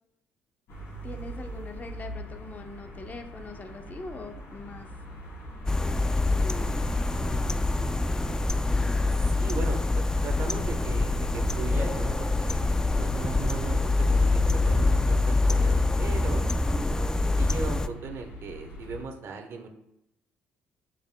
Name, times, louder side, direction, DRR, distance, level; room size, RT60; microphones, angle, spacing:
sound 1, 0.7-19.0, right 1 dB, 75° left, 2.5 m, -40 dB
voice 1, 1.0-4.9 5.8-6.9 7.2-7.7 16.2-16.6, left 3 dB, 35° left, 5 dB, 0.8 m, -43 dB
sound 2, 5.7-17.9, left 2 dB, 15° left, 0.4 m, -25 dB
voice 2, 9.1-15.7 16.0-16.4 17.3-19.7, right 4 dB, 65° right, 4 dB, 1.0 m, -38 dB
7.4 x 6.7 x 2.3 m, 0.84 s
supercardioid pair, 65°, 5 cm